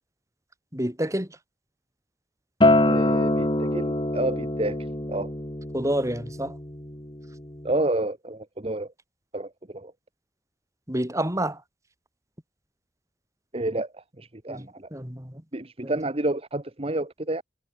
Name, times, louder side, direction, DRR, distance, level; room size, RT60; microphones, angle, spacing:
voice 1, 0.7-1.4 5.7-6.6 10.9-11.6 14.5-15.4 15.8-15.9, right 1 dB, 15° right, 5.8 m, -29 dB
Acoustic guitar, 2.6-7.8, left 1 dB, 25° left, 3.1 m, -25 dB
voice 2, 2.7-5.3 7.6-8.9 9.3-9.9 13.5-14.9 15.5-17.4, right 2 dB, 35° right, 1.4 m, -30 dB
head